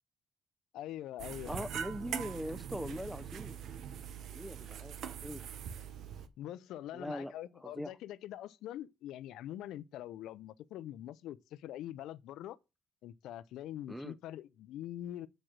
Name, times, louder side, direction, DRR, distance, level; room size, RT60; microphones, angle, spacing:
voice 1, 0.7-1.7 6.4-12.6 13.0-15.3, left 12 dB, 85° left, 0.5 m, -44 dB
sound 1, 1.2-6.3, right 8 dB, 75° right, 0.9 m, -42 dB
voice 2, 1.4-3.6 4.3-5.4 6.9-7.3 7.6-7.9 13.9-14.2, equal, ahead, 0.6 m, -41 dB
7.5 x 4.9 x 7.3 m
cardioid pair, 85°, 0 cm